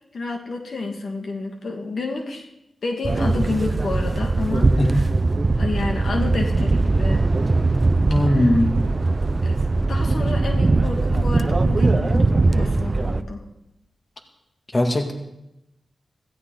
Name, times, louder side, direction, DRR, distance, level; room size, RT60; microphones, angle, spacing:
voice 1, 0.1-2.5 2.8-5.1 5.6-7.2 8.3-8.6 9.4-13.4, left 3 dB, 75° left, 2 dB, 2.0 m, -30 dB
sound 1, 3.0-13.2, right 3 dB, 40° right, 0.6 m, -20 dB
voice 2, 8.1-8.7 14.7-15.1, left 1 dB, 30° left, 4 dB, 2.1 m, -19 dB
16.5 x 15.0 x 3.9 m, 0.87 s
cardioid pair, 60°, 0 cm